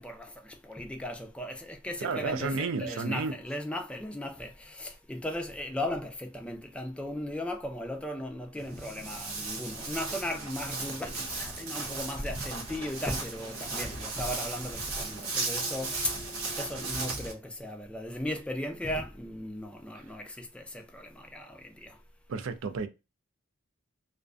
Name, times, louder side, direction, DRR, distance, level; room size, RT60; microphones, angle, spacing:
voice 1, 0.0-16.2 16.6-22.0, left 1 dB, 5° left, 0.4 m, -37 dB
voice 2, 2.0-3.4 19.9-20.1 22.3-22.9, right 4 dB, 65° right, 0.4 m, -32 dB
sound 1, 2.8-6.5 7.1-7.2 7.4-7.5, right 3 dB, 25° right, 0.8 m, -51 dB
Walk footsteps, 8.6-17.3, right 3 dB, 90° right, 0.9 m, -36 dB
sound 2, 14.0-17.1, left 1 dB, 75° left, 0.6 m, -51 dB
2.4 x 2.1 x 2.4 m
head